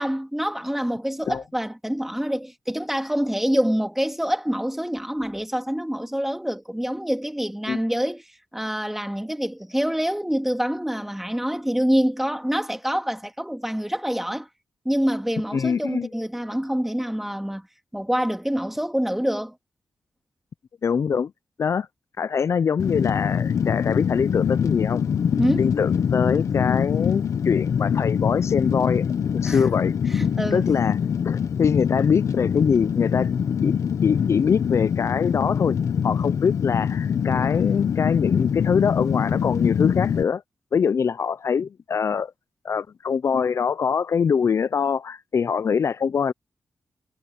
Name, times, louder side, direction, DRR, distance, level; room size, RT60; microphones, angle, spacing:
voice 1, 0.0-8.2 8.5-14.5 14.8-17.7 17.9-19.6 25.4-25.7 29.4-29.7 30.1-30.7, equal, 5° right, 2.9 m, -26 dB
voice 2, 15.5-16.1 20.8-21.3 21.6-21.9 22.2-25.0 25.6-29.1 29.3-29.9 30.5-31.0 31.2-33.3 33.6-35.8 36.0-40.4 40.7-42.3 42.6-46.3, left 6 dB, 60° left, 0.4 m, -23 dB
Fire, 22.8-40.2, left 7 dB, 80° left, 1.1 m, -24 dB
cardioid pair, 70°, 5 cm